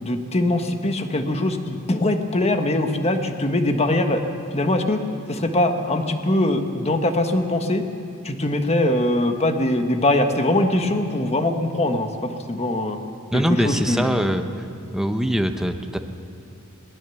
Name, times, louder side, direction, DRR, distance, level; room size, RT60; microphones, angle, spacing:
voice 1, 0.0-4.2 4.5-5.0 5.3-7.8 8.2-13.0 13.3-14.3, left 1 dB, 30° left, 6 dB, 1.4 m, -22 dB
voice 2, 13.3-14.7 14.9-16.0, equal, ahead, 5 dB, 0.9 m, -22 dB
22.0 x 19.5 x 7.1 m, 2.5 s
head